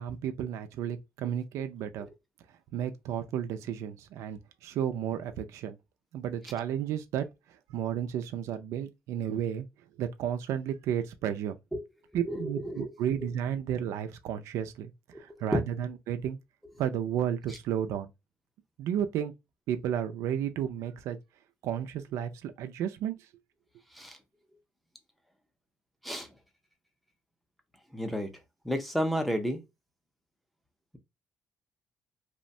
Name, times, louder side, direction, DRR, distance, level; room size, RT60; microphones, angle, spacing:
voice 1, 0.0-2.1 2.7-5.8 6.1-9.7 10.0-11.6 12.1-14.9 15.2-16.4 16.8-18.1 18.8-19.3 19.7-21.2 21.6-23.2, right 9 dB, 80° right, 0.3 m, -32 dB
voice 2, 12.3-12.9 13.2-13.3 15.1-15.6 17.5-17.6 23.9-24.2 26.0-26.4 27.9-28.3 28.6-29.6, equal, ahead, 0.4 m, -32 dB
2.9 x 2.1 x 2.6 m
cardioid pair, 175°, 5 cm